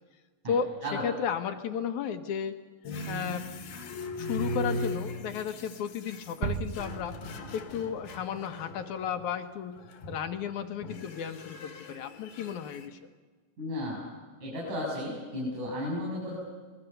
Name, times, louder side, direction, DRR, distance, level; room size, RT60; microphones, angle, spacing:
voice 1, 0.5-2.6 3.1-3.5 4.2-7.2 7.5-13.0, left 7 dB, 70° left, 8 dB, 2.4 m, -34 dB
sound 1, 2.9-9.3 9.8-10.4 10.8-12.9, left 1 dB, 90° left, 3.6 m, -38 dB
sound 2, 6.4-8.4 8.7-8.9, right 7 dB, 80° right, 2.6 m, -37 dB
voice 2, 13.6-14.1 14.4-16.3, left 1 dB, 65° right, -3 dB, 8.9 m, -34 dB
28.0 x 20.5 x 6.8 m, 1.5 s
omnidirectional pair, 3.9 m